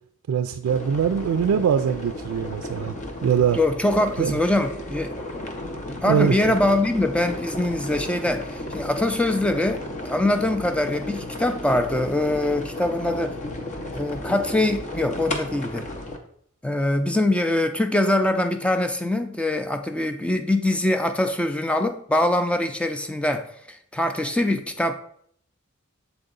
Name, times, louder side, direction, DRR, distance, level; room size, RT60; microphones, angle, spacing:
voice 1, 0.3-2.9 3.2-3.6 4.2-4.4 6.0-6.4, right 7 dB, 85° right, 0.3 m, -22 dB
sound 1, 0.7-16.2, left 1 dB, 35° left, 0.7 m, -34 dB
voice 2, 3.5-5.2 6.0-13.4 13.9-15.9 16.6-24.9, left 1 dB, 5° left, 0.4 m, -23 dB
7.0 x 3.9 x 3.8 m
head